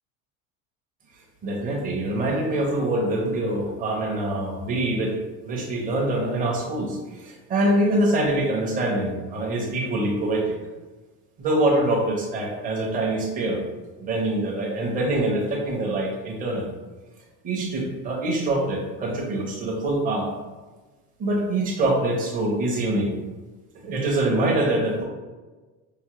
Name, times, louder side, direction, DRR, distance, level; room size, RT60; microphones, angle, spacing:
voice 1, 1.4-5.1 5.4-10.5 11.4-13.6 14.0-16.7 17.4-20.2 21.2-23.1 23.8-25.0, right 1 dB, 25° right, -1 dB, 0.6 m, -24 dB
5.5 x 2.0 x 3.0 m, 1.3 s
cardioid pair, 175°, 35 cm